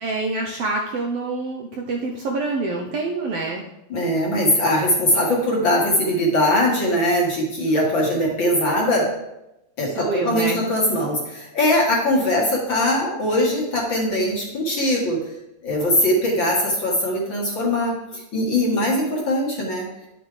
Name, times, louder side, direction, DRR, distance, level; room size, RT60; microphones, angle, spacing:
voice 1, 0.0-3.6 9.8-10.6, right 3 dB, 70° right, 0 dB, 1.5 m, -26 dB
voice 2, 3.9-9.1 9.8-15.2 15.6-19.9, left 1 dB, 45° left, -2 dB, 1.8 m, -21 dB
10.5 x 7.3 x 3.3 m, 0.90 s
omnidirectional pair, 3.4 m